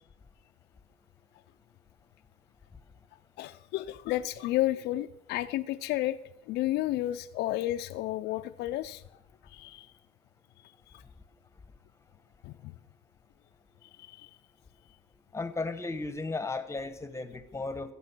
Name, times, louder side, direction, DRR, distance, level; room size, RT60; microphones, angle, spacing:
voice 1, 3.4-6.2 6.5-9.9 10.9-11.0 12.4-12.7 13.8-14.3, left 15 dB, 80° left, 9 dB, 0.5 m, -32 dB
voice 2, 15.3-17.9, left 3 dB, 15° left, 12 dB, 1.0 m, -35 dB
14.5 x 7.4 x 6.0 m, 0.83 s
cardioid pair, 110°, 17 cm